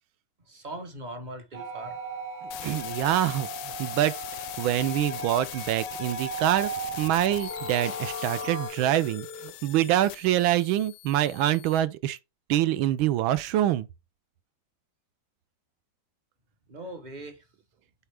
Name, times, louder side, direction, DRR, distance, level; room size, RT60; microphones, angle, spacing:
voice 1, 0.4-2.2 16.7-17.5, right 1 dB, 35° right, 0.7 m, -41 dB
sound 1, 1.5-8.7, right 1 dB, 65° right, 3.2 m, -36 dB
voice 2, 2.4-4.1 4.6-6.7 7.0-12.2 12.5-13.9, right 12 dB, 80° right, 1.4 m, -25 dB
sound 2, 2.5-11.8, left 15 dB, 85° left, 1.4 m, -41 dB
Telephone, 7.5-9.5, left 3 dB, 55° left, 0.7 m, -42 dB
9.0 x 3.4 x 3.4 m
omnidirectional pair, 2.2 m